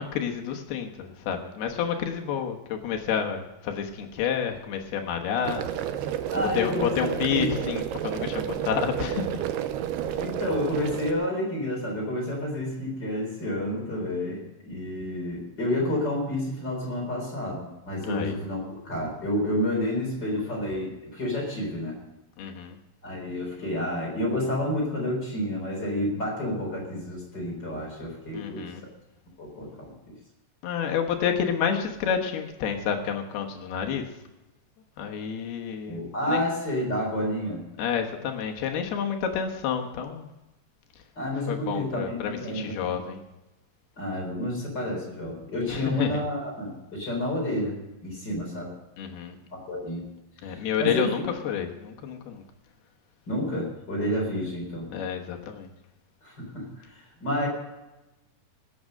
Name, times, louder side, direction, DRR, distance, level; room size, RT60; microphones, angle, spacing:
voice 1, 0.0-5.7 6.5-9.4 18.1-18.4 22.4-22.8 28.3-28.8 30.6-34.1 35.0-36.4 37.8-40.3 41.5-43.2 45.7-46.1 49.0-49.4 50.4-52.4 54.9-55.7, left 8 dB, 75° left, 3 dB, 3.1 m, -29 dB
sound 1, 5.4-11.1, right 10 dB, 80° right, 2.7 m, -31 dB
voice 2, 6.3-7.5 10.2-22.0 23.0-28.7 29.4-29.9 35.9-37.6 41.2-43.0 44.0-47.8 48.0-48.7 49.5-50.1 50.4-51.3 53.3-54.9 56.2-57.5, left 1 dB, 25° left, -1 dB, 4.2 m, -30 dB
19.0 x 8.6 x 6.5 m, 1.0 s
omnidirectional pair, 4.7 m